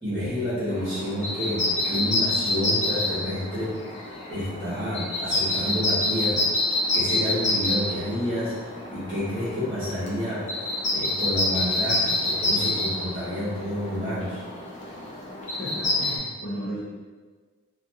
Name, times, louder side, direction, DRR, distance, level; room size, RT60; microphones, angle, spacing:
voice 1, 0.0-3.7 4.3-6.4 6.9-10.4 10.9-14.4, left 1 dB, 20° right, -12 dB, 1.0 m, -29 dB
sound 1, 0.7-16.2, left 2 dB, 30° left, 0.4 m, -27 dB
voice 2, 15.6-16.8, equal, 65° left, -8 dB, 0.6 m, -34 dB
2.4 x 2.4 x 2.7 m, 1.4 s
head